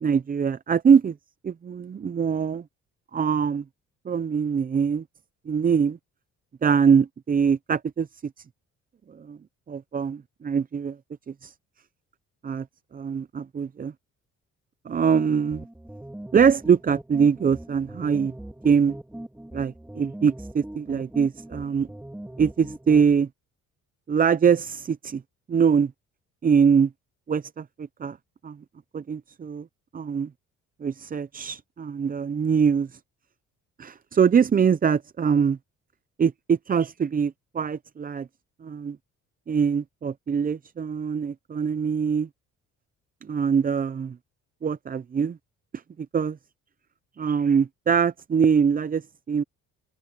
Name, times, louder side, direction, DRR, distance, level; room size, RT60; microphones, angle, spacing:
voice 1, 0.0-1.1 1.4-2.6 3.1-3.6 4.1-5.0 5.5-6.0 6.6-8.1 9.1-9.4 9.7-11.0 11.4-11.5 12.4-12.7 12.9-13.9 14.9-15.6 16.3-18.3 18.6-19.0 19.5-21.9 22.4-23.3 24.1-25.2 25.5-25.9 26.4-26.9 27.3-28.2 28.4-28.6 28.9-29.7 29.9-30.3 30.8-32.9 33.8-35.6 36.2-38.3 38.6-39.0 39.5-42.3 43.2-44.2 44.6-45.4 46.1-46.4 47.2-49.0 49.3-49.4, right 6 dB, 30° right, 0.6 m, -23 dB
sound 1, 15.1-23.1, right 1 dB, 5° right, 1.6 m, -40 dB
cardioid pair, 90°, 30 cm